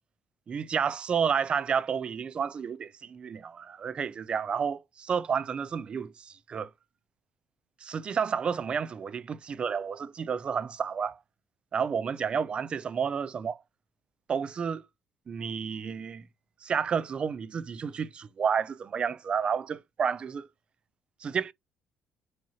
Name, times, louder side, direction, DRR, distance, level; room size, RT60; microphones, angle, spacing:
voice 1, 0.5-6.7 7.8-11.2 11.7-13.6 14.3-14.8 15.3-16.2 16.6-20.5 21.2-21.5, right 6 dB, 40° right, 0.3 m, -30 dB
4.7 x 2.9 x 2.7 m
cardioid pair, 90°, 3 cm